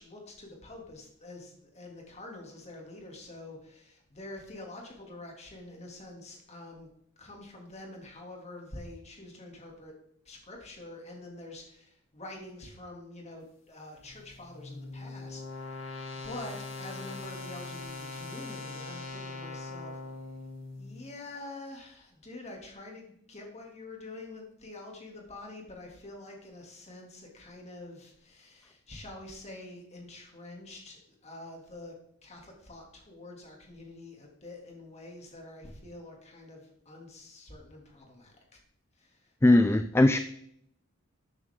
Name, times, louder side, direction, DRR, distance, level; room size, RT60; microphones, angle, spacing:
voice 1, 0.0-6.9 7.2-9.9 10.2-20.0 20.8-31.9 32.2-38.4 39.0-39.3, left 2 dB, 30° left, 0 dB, 2.6 m, -46 dB
sound 1, 14.0-21.1, left 3 dB, 65° left, 2.5 m, -41 dB
voice 2, 39.4-40.2, left 1 dB, 10° left, 10 dB, 0.3 m, -20 dB
12.5 x 9.1 x 3.7 m, 0.73 s
head